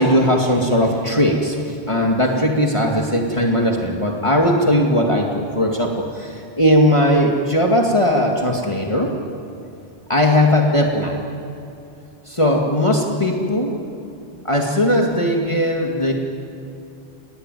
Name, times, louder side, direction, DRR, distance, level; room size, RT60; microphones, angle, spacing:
voice 1, 0.0-9.1 10.1-11.2 12.3-13.8 14.4-16.1, equal, 25° left, 0 dB, 2.3 m, -18 dB
29.5 x 19.0 x 9.3 m, 2.8 s
omnidirectional pair, 1.2 m